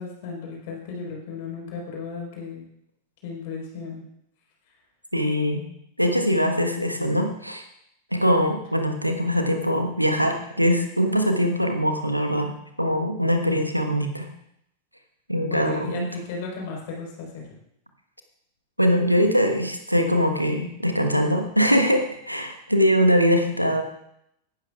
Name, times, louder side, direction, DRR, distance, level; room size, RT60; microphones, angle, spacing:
voice 1, 0.0-2.6 3.2-4.0 15.4-17.5, left 4 dB, 50° left, -2 dB, 4.3 m, -35 dB
voice 2, 5.1-5.6 6.0-7.6 8.1-12.5 12.8-14.3 15.3-16.1 18.8-23.8, equal, 90° right, 5 dB, 1.3 m, -22 dB
17.0 x 12.5 x 2.4 m, 0.77 s
figure-of-eight pair, 90°, 0 cm